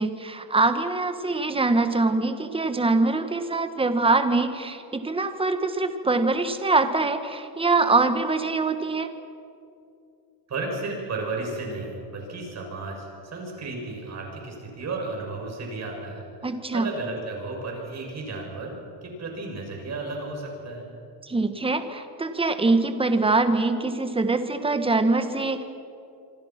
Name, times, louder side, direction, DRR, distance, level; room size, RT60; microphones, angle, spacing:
voice 1, 0.0-9.1 16.4-16.9 21.2-25.6, right 3 dB, 10° right, 8 dB, 1.6 m, -23 dB
voice 2, 10.5-20.8, right 3 dB, 30° right, 0 dB, 7.7 m, -33 dB
27.0 x 25.0 x 6.1 m, 2.6 s
cardioid pair, 145°, 49 cm